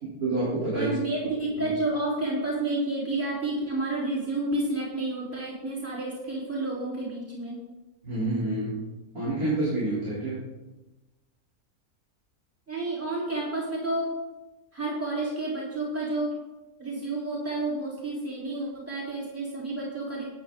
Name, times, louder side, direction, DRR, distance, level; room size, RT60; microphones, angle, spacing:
voice 1, 0.0-1.0 8.0-8.8 9.1-10.5, right 2 dB, 75° right, -9 dB, 4.2 m, -28 dB
voice 2, 0.7-7.6 12.7-14.1 14.7-16.4 16.8-20.2, right 2 dB, 10° right, -6 dB, 3.7 m, -30 dB
13.5 x 9.4 x 3.9 m, 1.1 s
omnidirectional pair, 1.6 m